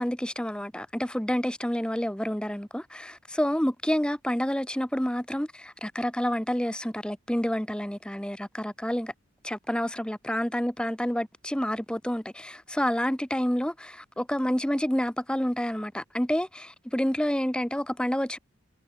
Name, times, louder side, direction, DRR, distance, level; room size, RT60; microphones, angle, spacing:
voice 1, 0.0-9.1 9.4-18.4, equal, 5° left, 0.9 m, -29 dB
head